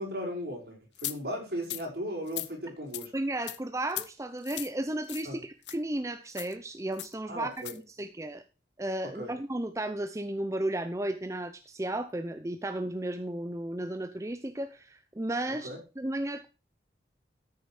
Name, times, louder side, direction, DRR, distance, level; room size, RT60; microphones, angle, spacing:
voice 1, 0.0-3.1 5.2-5.4 7.3-7.7 9.1-9.3 15.5-15.8, equal, 60° right, -1 dB, 5.7 m, -36 dB
sound 1, 1.0-1.2 1.6-1.8 2.3-2.5 2.9-3.1 3.5-3.6 3.9-4.1 4.4-4.7 5.1-5.3 5.6-5.8 6.3-6.5 7.0-7.1 7.6-7.8, left 15 dB, 85° left, 0.7 m, -37 dB
voice 2, 3.1-8.4 8.8-15.7 16.0-16.5, right 1 dB, 15° right, 9 dB, 0.6 m, -34 dB
13.5 x 6.8 x 4.9 m, 0.32 s
head